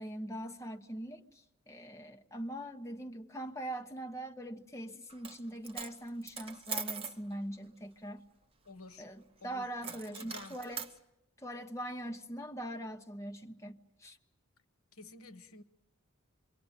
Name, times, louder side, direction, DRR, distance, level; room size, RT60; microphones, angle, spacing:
voice 1, 0.0-8.2 9.0-10.9 11.4-14.2, right 1 dB, 15° left, 1.1 m, -42 dB
Coin (dropping), 5.1-5.4 5.6-7.2 9.8-10.9, right 6 dB, 25° right, 1.1 m, -41 dB
voice 2, 8.6-9.1 9.4-10.6 14.9-15.6, left 2 dB, 80° left, 1.3 m, -51 dB
26.5 x 24.0 x 9.1 m
head